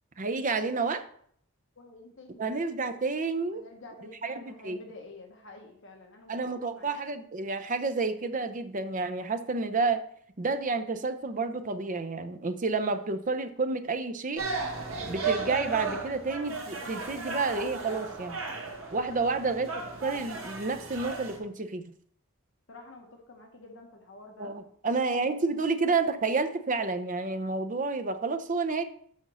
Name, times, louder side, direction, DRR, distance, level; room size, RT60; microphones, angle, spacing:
voice 1, 0.2-1.0 2.4-3.6 4.2-4.3 4.6-4.8 6.3-10.0 10.4-14.5 15.1-18.4 18.9-19.7 20.0-21.8 24.4-28.8, right 3 dB, 35° right, 9 dB, 0.6 m, -30 dB
voice 2, 1.7-2.5 3.4-6.4 6.7-7.2 19.0-19.4 22.7-24.6 25.4-25.7, left 2 dB, 60° left, 2 dB, 1.4 m, -49 dB
sound 1, 14.4-21.4, right 4 dB, 70° right, 1.7 m, -35 dB
6.4 x 5.3 x 6.2 m, 0.63 s
head